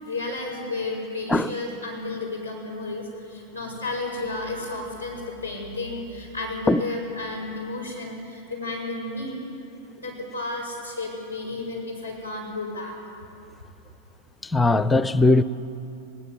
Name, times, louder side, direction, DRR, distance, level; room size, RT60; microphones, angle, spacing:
voice 1, 0.0-9.4 9.9-12.9, left 2 dB, 90° right, 5.8 m, -32 dB
voice 2, 14.4-15.4, left 2 dB, 10° left, 0.5 m, -19 dB
20.0 x 18.5 x 8.1 m
figure-of-eight pair, 90°, 0 cm